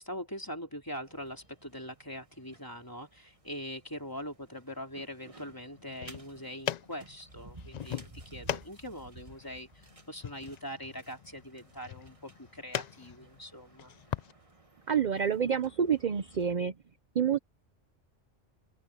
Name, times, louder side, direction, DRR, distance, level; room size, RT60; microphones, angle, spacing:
voice 1, 0.0-8.0 8.2-13.9, equal, 15° left, 3.4 m, -42 dB
sound 1, 1.0-16.5, right 2 dB, 25° right, 1.8 m, -56 dB
sound 2, 5.8-14.3, left 10 dB, 90° left, 0.3 m, -41 dB
voice 2, 14.9-16.7 17.1-17.4, right 7 dB, 45° right, 0.7 m, -28 dB
open air
omnidirectional pair, 1.3 m